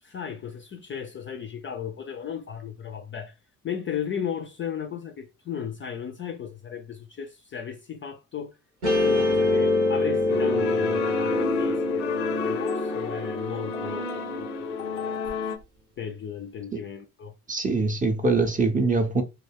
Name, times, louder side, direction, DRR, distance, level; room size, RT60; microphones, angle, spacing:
voice 1, 0.0-3.4 3.6-8.6 9.0-15.2 16.0-17.3, left 8 dB, 30° left, 0.4 m, -35 dB
Guitar, 8.8-15.3, left 2 dB, 90° right, 1.0 m, -26 dB
sound 1, 10.3-15.6, left 3 dB, 80° left, 0.5 m, -31 dB
voice 2, 17.5-19.2, right 3 dB, 20° right, 0.6 m, -23 dB
2.4 x 2.1 x 3.3 m
hypercardioid pair, 45°, 43 cm